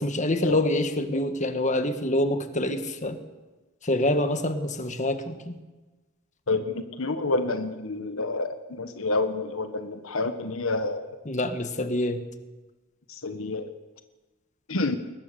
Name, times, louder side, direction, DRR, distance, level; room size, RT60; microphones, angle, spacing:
voice 1, 0.0-3.2 3.8-5.6 11.2-12.2, left 1 dB, 35° left, 8 dB, 1.6 m, -26 dB
voice 2, 6.5-11.1 13.1-13.7 14.7-14.9, left 3 dB, 75° left, 9 dB, 1.3 m, -28 dB
22.0 x 20.0 x 7.0 m, 1.2 s
head